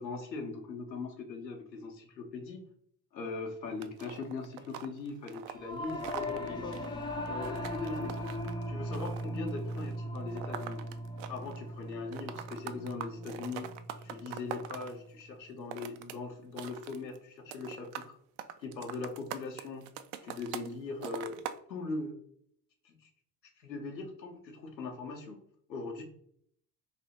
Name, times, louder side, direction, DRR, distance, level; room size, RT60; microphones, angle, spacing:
voice 1, 0.0-2.7 3.1-6.8 7.2-8.3 8.7-10.8 11.3-13.7 14.0-18.2 18.6-19.8 20.2-21.4 21.7-22.2 22.8-23.1 23.6-25.4 25.7-26.0, left 3 dB, 85° left, 2 dB, 0.7 m, -40 dB
sound 1, 3.8-11.6 11.9-14.9 15.5-16.2 16.4-17.2 17.5-18.1 18.4-20.7 21.0-21.6, right 10 dB, 50° right, 0.5 m, -43 dB
Singing / Musical instrument, 5.6-15.1, equal, 10° left, 0.4 m, -39 dB
3.2 x 2.7 x 4.0 m, 0.65 s
figure-of-eight pair, 60°, 50 cm